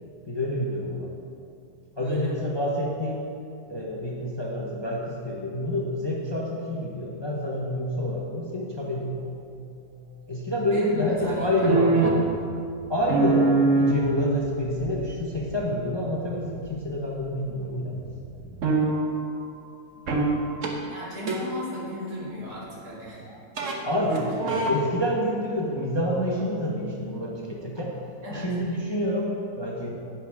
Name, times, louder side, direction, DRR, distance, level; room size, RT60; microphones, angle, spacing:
voice 1, 0.3-1.1 2.0-3.3 3.7-9.2 10.3-11.9 12.9-18.0 23.8-24.3 24.7-27.9 28.3-29.9, left 1 dB, 20° left, -3 dB, 0.9 m, -28 dB
sound 1, 8.8-10.1 11.0-17.6 17.9-19.1 20.1-20.3 20.6-20.7 21.3-21.6 23.6-23.7 24.0-24.8, right 3 dB, 55° right, 1.3 m, -25 dB
voice 2, 10.7-11.5 11.7-11.9 20.8-23.3 24.1-24.6 28.2-28.5, equal, 85° right, -7 dB, 3.0 m, -37 dB
10.0 x 9.3 x 3.6 m, 2.4 s
omnidirectional pair, 1.6 m